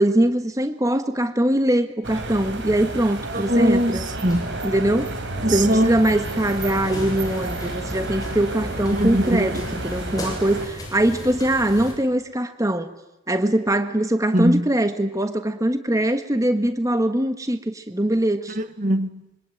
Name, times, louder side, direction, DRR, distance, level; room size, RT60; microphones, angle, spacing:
voice 1, 0.0-4.0 4.6-5.1 5.5-12.9 13.3-18.6, right 1 dB, 15° right, 1.4 m, -22 dB
sound 1, 2.0-10.7, right 2 dB, 55° right, 4.1 m, -31 dB
voice 2, 3.3-4.5 5.4-6.0 8.9-9.5 14.3-14.7 18.5-19.2, equal, 40° right, 1.5 m, -21 dB
sound 2, 3.7-11.9, left 1 dB, 20° left, 7.4 m, -37 dB
25.5 x 24.5 x 9.3 m
head